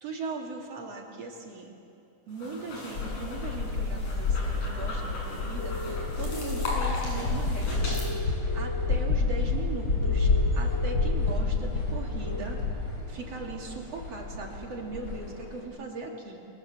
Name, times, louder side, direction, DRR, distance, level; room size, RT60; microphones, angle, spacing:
voice 1, 0.0-1.7 2.3-8.0 8.5-12.6 13.1-16.4, right 3 dB, 55° right, 0 dB, 4.0 m, -39 dB
sound 1, 2.3-8.1, left 2 dB, 85° left, 8.0 m, -38 dB
sound 2, 3.0-15.6, left 3 dB, 45° left, 6.0 m, -29 dB
sound 3, 5.6-6.7 7.8-8.9 10.0-11.2 12.2-12.4, left 1 dB, 5° left, 2.8 m, -38 dB
29.5 x 22.5 x 7.8 m, 2.6 s
omnidirectional pair, 3.4 m